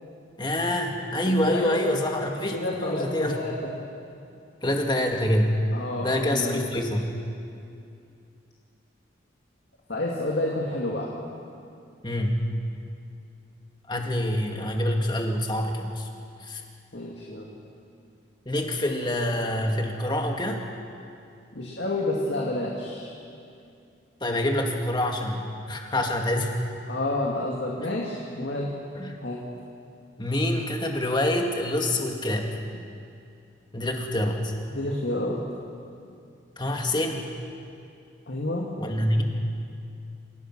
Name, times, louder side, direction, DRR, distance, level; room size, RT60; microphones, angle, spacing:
voice 1, 0.4-3.4 4.6-5.6 6.0-7.1 12.0-12.4 13.9-16.1 16.4-16.6 18.5-20.6 24.2-26.5 28.9-29.1 30.2-32.6 33.7-34.5 36.6-37.3 38.8-39.2, left 1 dB, 25° left, 2 dB, 1.9 m, -26 dB
voice 2, 1.5-1.8 2.5-3.8 5.7-6.6 9.9-11.1 16.9-17.6 21.5-23.1 26.9-28.7 29.2-29.4 34.7-35.4 38.3-38.7, left 1 dB, 60° left, -2 dB, 2.3 m, -29 dB
27.5 x 16.5 x 6.1 m, 2.5 s
head